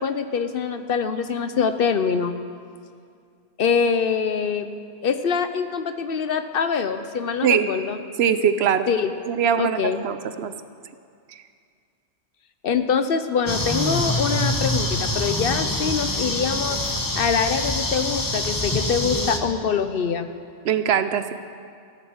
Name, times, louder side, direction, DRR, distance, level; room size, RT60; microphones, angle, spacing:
voice 1, 0.0-2.4 3.6-4.7 5.0-8.0 8.9-9.1 9.6-10.1 12.6-16.8 17.2-20.3, left 6 dB, 60° left, 9 dB, 0.8 m, -24 dB
voice 2, 8.2-8.9 9.3-10.5 20.6-21.3, right 8 dB, 75° right, 11 dB, 0.9 m, -21 dB
sound 1, 13.5-19.4, left 1 dB, 20° left, 0.9 m, -25 dB
14.5 x 10.5 x 6.4 m, 2.2 s
omnidirectional pair, 1.1 m